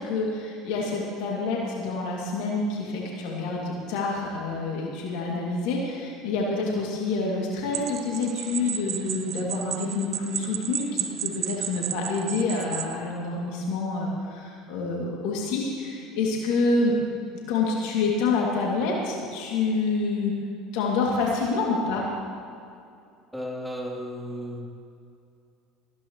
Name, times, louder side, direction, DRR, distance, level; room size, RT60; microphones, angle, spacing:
voice 1, 0.0-17.0 17.5-20.4 20.7-22.1, left 3 dB, 70° left, -2 dB, 2.6 m, -27 dB
sound 1, 7.7-13.0, right 9 dB, 50° right, 0.7 m, -33 dB
voice 2, 23.3-24.7, equal, ahead, -3 dB, 3.5 m, -34 dB
19.0 x 15.5 x 3.2 m, 2.5 s
hypercardioid pair, 75°, 0 cm